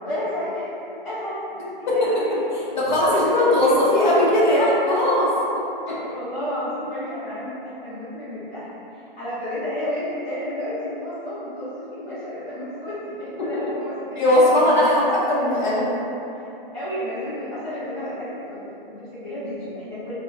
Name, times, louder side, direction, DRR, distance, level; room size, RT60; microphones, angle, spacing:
voice 1, 0.0-4.4 5.9-14.5 16.7-20.1, left 1 dB, 10° left, -17 dB, 0.6 m, -32 dB
voice 2, 1.9-2.2 2.5-5.3 5.9-6.0 14.2-15.9, left 1 dB, 50° left, -7 dB, 0.7 m, -19 dB
3.7 x 2.0 x 2.5 m, 3.0 s
hypercardioid pair, 175°, 29 cm